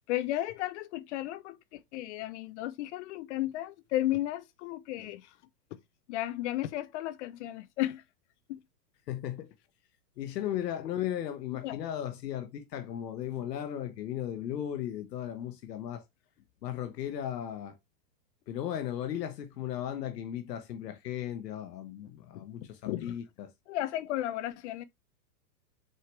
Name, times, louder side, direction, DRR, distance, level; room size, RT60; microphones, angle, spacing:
voice 1, 0.1-5.4 6.1-8.0 8.5-8.6 11.6-11.8 22.3-23.1 23.7-24.8, left 14 dB, 45° left, 0.5 m, -34 dB
voice 2, 9.1-9.5 10.2-16.0 16.6-17.8 18.5-23.5, left 11 dB, 75° left, 1.1 m, -36 dB
6.6 x 4.7 x 3.3 m
hypercardioid pair, 115°, 50 cm